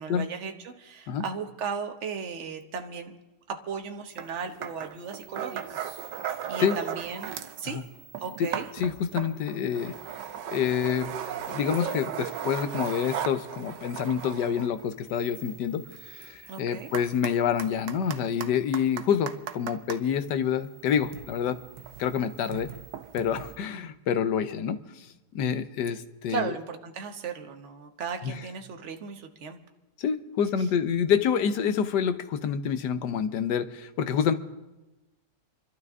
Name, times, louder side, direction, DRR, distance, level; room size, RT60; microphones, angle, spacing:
voice 1, 0.0-3.1 3.5-5.8 6.5-7.8 8.2-8.7 16.5-16.9 26.3-29.6 31.4-31.8, right 5 dB, 45° right, 5 dB, 1.3 m, -36 dB
sound 1, 4.2-4.3 4.6-7.6 7.9-20.0 20.8-23.6, right 8 dB, 85° right, 1.4 m, -37 dB
voice 2, 8.8-10.0 10.5-11.1 11.5-21.6 22.0-22.7 23.1-25.1 25.3-26.5 28.2-28.4 30.0-34.3, left 8 dB, 75° left, 10 dB, 1.4 m, -27 dB
28.5 x 12.0 x 3.6 m, 1.0 s
omnidirectional pair, 1.8 m